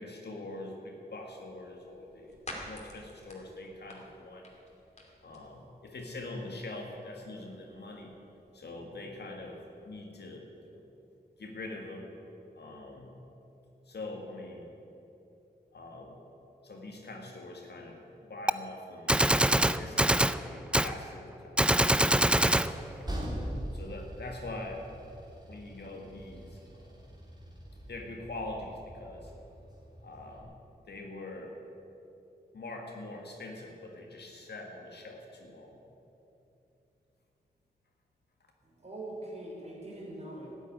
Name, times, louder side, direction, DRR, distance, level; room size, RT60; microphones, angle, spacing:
voice 1, 0.0-2.4 2.6-4.5 5.2-8.1 8.5-10.8 11.4-12.1 12.5-13.1 13.9-14.7 15.7-16.2 16.6-22.8 23.3-24.9 25.5-27.1 27.9-29.3 30.0-30.6 30.9-31.6 32.5-35.8, left 2 dB, 80° left, 1 dB, 1.9 m, -44 dB
sound 1, 1.2-9.9, left 1 dB, 40° left, 2.7 m, -52 dB
Gunshot gunfire, 18.5-18.6 19.1-20.4 20.7-20.9 21.6-22.7, right 1 dB, 5° right, 0.4 m, -24 dB
Train, 21.8-30.4, equal, 25° right, 3.2 m, -43 dB
voice 2, 38.6-40.5, right 1 dB, 40° right, -4 dB, 3.8 m, -42 dB
13.0 x 8.3 x 9.7 m, 2.9 s
wide cardioid pair, 85°, 17 cm